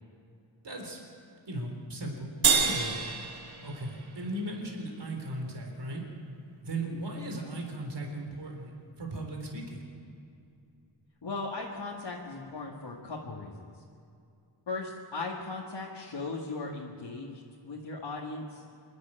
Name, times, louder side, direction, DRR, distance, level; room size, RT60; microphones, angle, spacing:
voice 1, 0.6-1.0 1.5-3.0 3.6-6.1 6.6-8.7 9.0-9.8, right 1 dB, 60° right, 1 dB, 3.9 m, -37 dB
sound 1, 2.4-5.0, right 6 dB, 85° right, 1.9 m, -29 dB
voice 2, 11.2-13.7 14.7-18.6, left 3 dB, 65° left, -4 dB, 2.2 m, -38 dB
26.5 x 11.5 x 8.9 m, 2.5 s
wide cardioid pair, 100°, 46 cm